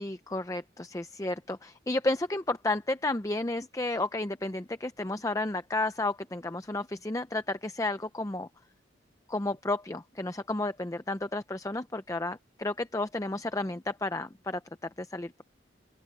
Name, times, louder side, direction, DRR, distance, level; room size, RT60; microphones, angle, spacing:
voice 1, 0.0-8.5 9.3-15.4, left 2 dB, 15° left, 0.5 m, -32 dB
open air
head